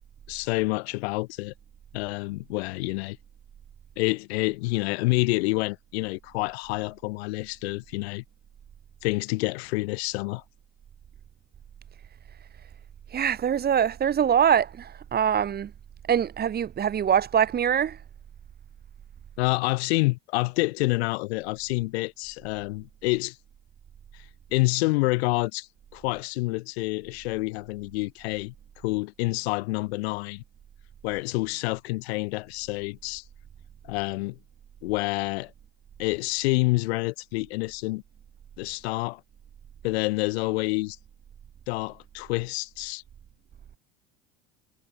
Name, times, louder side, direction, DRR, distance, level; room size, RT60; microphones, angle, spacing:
voice 1, 0.3-1.5 1.9-3.2 4.0-8.2 9.0-10.4 19.4-23.4 24.5-25.7 25.9-28.5 28.8-30.4 31.0-33.2 33.8-34.4 34.8-35.5 36.0-38.0 38.6-39.2 39.8-41.0 41.7-43.0, left 23 dB, 80° left, 0.9 m, -28 dB
voice 2, 13.1-15.7 16.1-18.0, right 8 dB, 30° right, 1.0 m, -23 dB
supercardioid pair, 90°, 31 cm